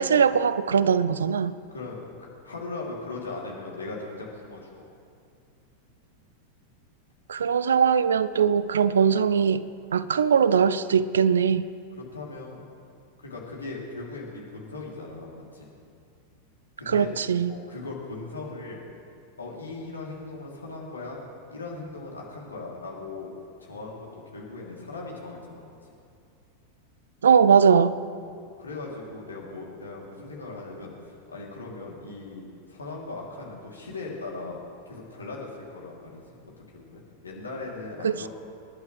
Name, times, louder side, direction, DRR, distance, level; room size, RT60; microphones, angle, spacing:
voice 1, 0.0-1.5 7.3-9.6 9.9-11.6 16.9-17.5 27.2-27.9 38.0-38.3, right 7 dB, 70° right, 16 dB, 0.5 m, -21 dB
voice 2, 1.7-4.7 12.0-12.6 13.2-15.7 16.8-17.1 17.5-18.8 19.4-21.2 21.5-23.3 23.6-25.7 28.2-28.3 28.6-32.4 32.7-34.6 34.9-38.3, left 3 dB, 75° left, -3 dB, 3.0 m, -39 dB
26.5 x 11.0 x 3.3 m, 2.5 s
figure-of-eight pair, 90°, 0 cm